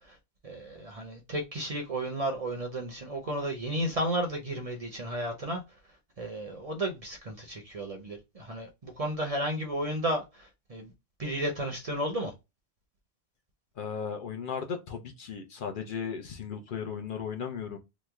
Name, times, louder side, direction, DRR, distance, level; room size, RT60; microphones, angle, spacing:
voice 1, 0.4-5.6 6.2-10.9 11.2-12.3, right 1 dB, 45° right, 0.6 m, -33 dB
voice 2, 13.8-17.8, left 6 dB, 60° left, 0.7 m, -36 dB
3.0 x 2.1 x 3.4 m
omnidirectional pair, 1.1 m